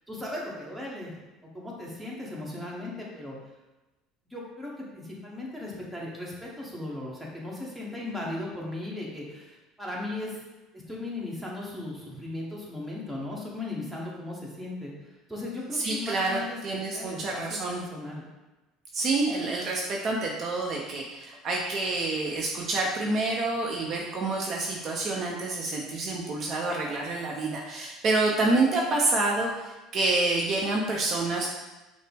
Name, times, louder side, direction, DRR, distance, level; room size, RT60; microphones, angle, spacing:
voice 1, 0.1-1.1 1.5-3.4 4.3-10.4 10.7-14.9 15.3-16.6 16.9-18.3, left 2 dB, 5° right, -4 dB, 1.2 m, -37 dB
voice 2, 15.7-17.8 18.9-31.5, right 2 dB, 45° right, -2 dB, 0.6 m, -28 dB
5.7 x 2.1 x 3.4 m, 1.1 s
supercardioid pair, 100°, 0 cm